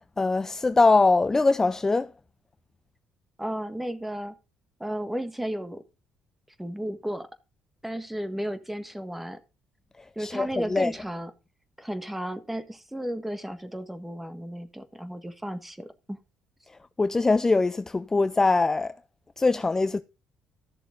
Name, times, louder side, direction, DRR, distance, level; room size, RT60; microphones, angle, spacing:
voice 1, 0.2-2.1 10.2-10.9 17.0-18.9 19.4-20.0, left 3 dB, 20° left, 0.5 m, -22 dB
voice 2, 3.4-4.3 4.8-5.8 6.6-7.3 7.8-9.4 10.1-11.3 11.8-16.2, equal, 5° right, 1.6 m, -33 dB
14.0 x 6.9 x 3.9 m
cardioid pair, 85°, 2 cm